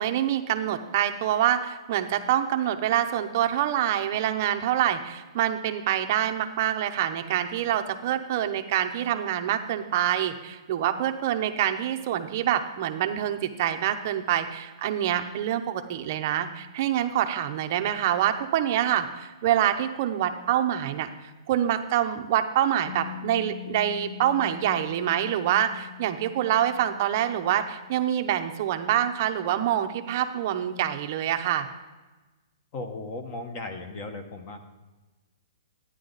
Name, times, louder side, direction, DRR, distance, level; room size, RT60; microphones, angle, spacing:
voice 1, 0.0-21.1 21.5-31.7, right 11 dB, 30° right, 7 dB, 0.7 m, -26 dB
Piano, 22.9-30.1, left 15 dB, 90° left, 1.1 m, -44 dB
voice 2, 32.7-34.6, left 2 dB, 20° left, 7 dB, 0.8 m, -36 dB
12.0 x 9.7 x 3.9 m, 1.2 s
hypercardioid pair, 175°, 3 cm